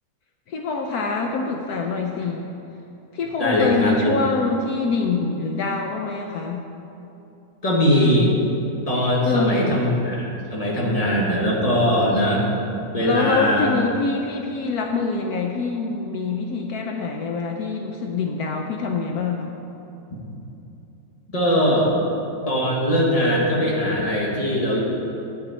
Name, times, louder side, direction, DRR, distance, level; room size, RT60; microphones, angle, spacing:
voice 1, 0.5-2.5 3.1-6.7 9.3-9.8 13.0-19.5, left 4 dB, 75° left, 2 dB, 1.2 m, -25 dB
voice 2, 3.4-4.1 7.6-8.3 8.9-12.4 12.9-13.7 21.3-21.9 22.5-24.8, equal, 25° left, -4 dB, 1.7 m, -20 dB
10.5 x 8.8 x 4.3 m, 2.9 s
omnidirectional pair, 1.7 m